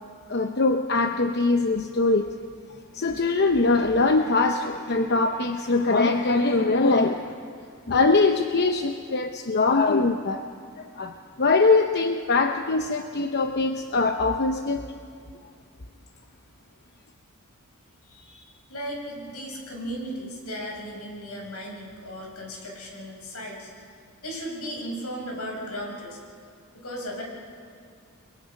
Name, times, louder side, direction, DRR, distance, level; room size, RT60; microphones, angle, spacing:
voice 1, 0.3-2.3 2.9-7.2 7.9-10.4 10.8-11.1 11.4-14.8, left 3 dB, 50° left, 6 dB, 0.8 m, -22 dB
voice 2, 18.1-23.8 24.2-26.2 26.7-27.2, equal, 80° left, -1 dB, 7.1 m, -36 dB
30.0 x 22.0 x 5.4 m, 2.3 s
head